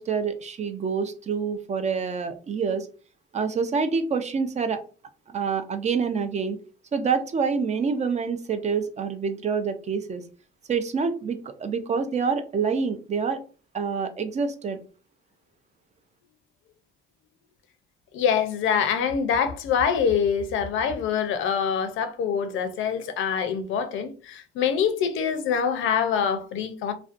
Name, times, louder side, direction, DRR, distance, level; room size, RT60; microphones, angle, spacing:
voice 1, 0.0-2.9 3.3-4.8 5.3-6.6 6.9-10.2 10.7-13.4 13.7-14.8, right 5 dB, 35° right, 0.4 m, -27 dB
voice 2, 18.1-26.9, left 7 dB, 80° left, 0.5 m, -25 dB
2.5 x 2.1 x 2.4 m
cardioid pair, 90°, 20 cm